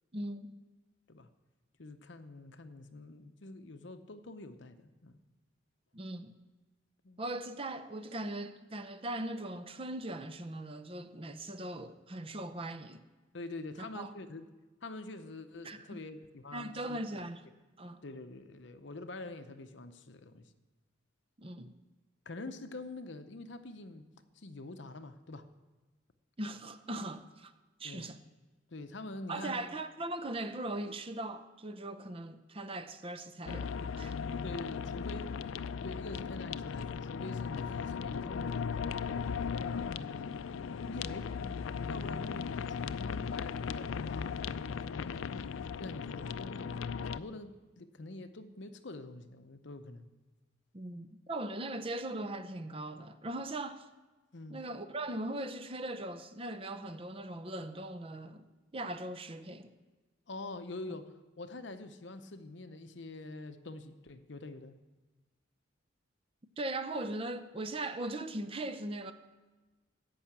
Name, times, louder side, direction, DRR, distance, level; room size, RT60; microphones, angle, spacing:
voice 1, 0.1-0.6 5.9-6.3 7.2-13.0 13.8-14.1 15.6-16.0 16.5-17.4 17.8-18.0 21.4-21.7 26.4-27.5 27.8-28.2 29.3-34.2 50.7-53.9 54.5-58.5 58.7-59.7 66.6-69.1, right 1 dB, 30° right, 0.6 m, -39 dB
voice 2, 1.8-5.2 7.0-7.2 13.3-14.5 14.8-17.2 18.0-20.5 22.3-24.1 24.3-25.5 27.8-28.1 28.7-29.8 34.4-35.4 35.8-40.4 40.9-45.5 45.8-46.8 47.1-50.1 54.3-54.6 60.3-64.8, left 2 dB, 60° left, 0.8 m, -46 dB
sound 1, 33.5-47.2, left 6 dB, 85° left, 0.4 m, -37 dB
14.0 x 5.7 x 8.7 m
head